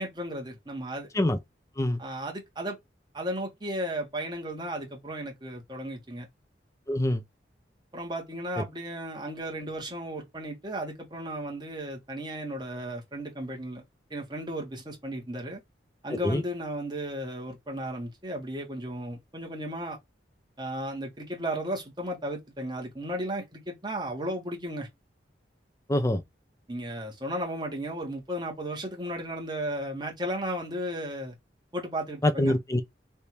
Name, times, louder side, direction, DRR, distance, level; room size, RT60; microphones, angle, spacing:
voice 1, 0.0-1.1 2.0-2.8 3.1-6.3 7.9-13.8 14.1-15.6 16.0-20.0 20.6-24.9 26.7-31.3 31.7-32.5, right 1 dB, 25° right, 1.4 m, -34 dB
voice 2, 6.9-7.2 8.6-8.7 16.2-16.4 25.9-26.2 32.2-32.8, left 1 dB, 15° left, 0.5 m, -25 dB
3.4 x 2.7 x 4.4 m
head